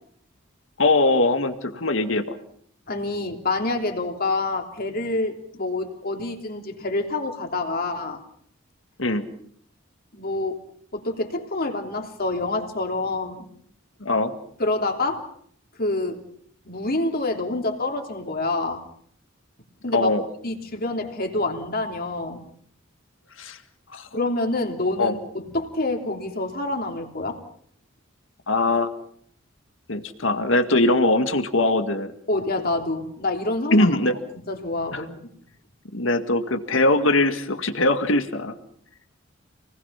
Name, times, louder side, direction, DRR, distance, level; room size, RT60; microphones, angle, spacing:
voice 1, 0.8-2.2 9.0-9.3 14.0-14.3 19.9-20.2 23.4-23.6 23.9-24.1 25.0-25.2 28.5-28.9 29.9-32.1 33.7-34.1 34.9-35.0 35.9-38.6, left 2 dB, 70° left, 7 dB, 2.0 m, -21 dB
voice 2, 2.9-8.2 10.1-10.6 10.9-13.5 14.6-15.3 15.8-16.2 16.6-18.8 19.8-20.1 20.4-22.4 24.1-27.4 32.3-33.9 34.5-35.3, left 2 dB, 50° left, 3 dB, 3.3 m, -27 dB
29.0 x 20.0 x 5.9 m, 0.62 s
head